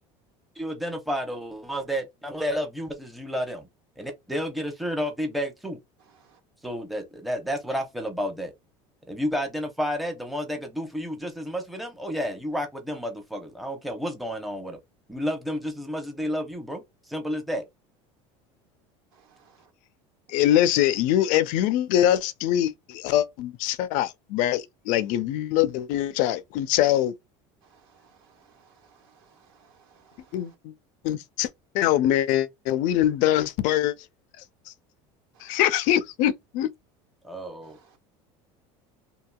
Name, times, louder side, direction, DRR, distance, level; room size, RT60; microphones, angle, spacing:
voice 1, 0.6-3.7 4.0-5.8 6.6-8.5 9.1-14.8 15.1-16.8 17.1-17.6 37.2-37.8, equal, ahead, 0.7 m, -31 dB
voice 2, 19.1-19.7 27.6-30.5 35.3-35.6 37.6-38.0, right 6 dB, 75° right, 1.4 m, -60 dB
voice 3, 20.3-27.1 30.3-30.7 31.0-31.5 31.7-33.9 35.4-36.7, left 12 dB, 65° left, 0.4 m, -23 dB
2.8 x 2.7 x 2.3 m
supercardioid pair, 120°, 14 cm